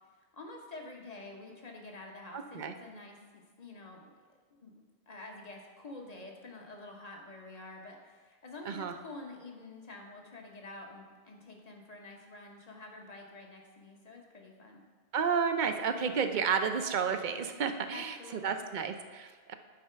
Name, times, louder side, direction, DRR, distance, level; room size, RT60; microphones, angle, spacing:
voice 1, 0.3-4.1 4.6-4.7 5.1-14.8 17.9-18.7, left 2 dB, 40° left, 1 dB, 1.1 m, -48 dB
voice 2, 2.3-2.7 8.7-8.9 15.1-18.1 18.4-19.5, right 6 dB, 55° right, 7 dB, 0.6 m, -31 dB
9.6 x 4.3 x 5.6 m, 1.5 s
omnidirectional pair, 1.1 m